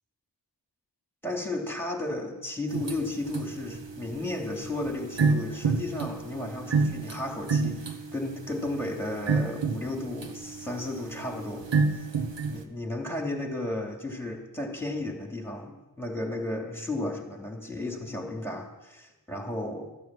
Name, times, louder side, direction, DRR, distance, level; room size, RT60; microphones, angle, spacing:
voice 1, 1.2-12.1 12.5-19.9, left 2 dB, 5° left, 1 dB, 3.0 m, -34 dB
sound 1, 2.7-12.6, right 4 dB, 70° right, 1.2 m, -30 dB
14.0 x 9.2 x 7.8 m, 1.1 s
wide cardioid pair, 50°, 45 cm